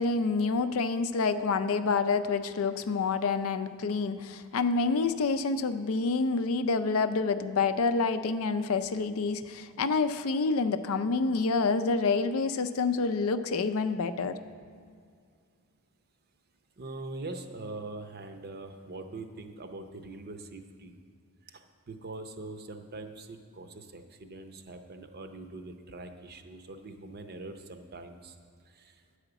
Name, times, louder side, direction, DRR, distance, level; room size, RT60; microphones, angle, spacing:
voice 1, 0.0-14.4, left 4 dB, 65° left, 10 dB, 0.4 m, -28 dB
voice 2, 16.8-20.9 21.5-28.4 28.7-29.0, right 2 dB, 45° right, 6 dB, 0.7 m, -43 dB
10.0 x 4.9 x 7.9 m, 2.2 s
head